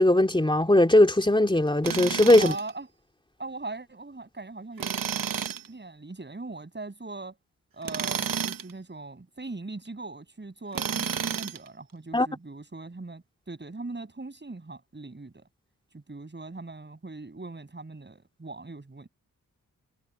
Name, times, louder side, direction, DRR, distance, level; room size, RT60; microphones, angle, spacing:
voice 1, 0.0-2.5 12.1-12.3, left 1 dB, 15° left, 3.1 m, -19 dB
Tools, 1.8-2.7 4.8-5.7 7.8-8.7 10.7-11.7, right 7 dB, 75° right, 1.4 m, -30 dB
voice 2, 2.4-2.9 3.4-4.9 5.7-7.4 7.7-15.5 15.9-19.1, right 3 dB, 30° right, 7.2 m, -40 dB
cardioid pair, 75°, 34 cm